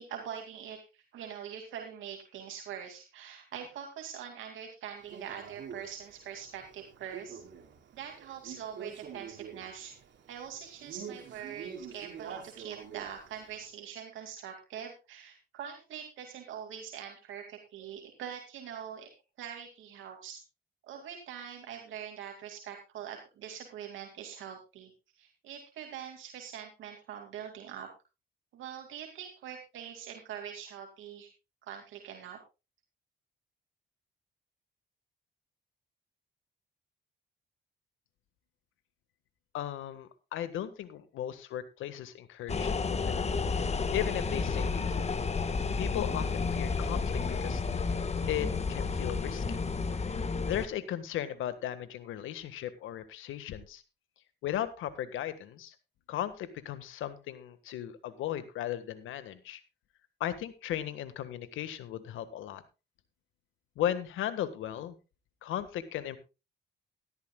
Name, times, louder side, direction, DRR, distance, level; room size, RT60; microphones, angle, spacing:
voice 1, 0.0-7.4 7.9-10.0 10.3-19.1 19.4-20.4 20.9-24.9 25.2-27.9 28.5-31.3 31.6-32.4, right 8 dB, 80° right, 3 dB, 2.5 m, -43 dB
Male speech man speaking, 5.1-13.6, right 7 dB, 65° right, 2.9 m, -46 dB
voice 2, 39.5-43.4 43.9-45.1 45.8-48.0 48.3-49.6 50.4-53.8 54.4-55.7 56.1-59.6 60.2-62.6 63.7-64.9 65.4-66.2, left 11 dB, 85° left, 12 dB, 1.6 m, -36 dB
sound 1, 42.5-50.7, left 4 dB, 35° left, 1.4 m, -31 dB
17.5 x 13.0 x 2.3 m, 0.28 s
cardioid pair, 90°, 20 cm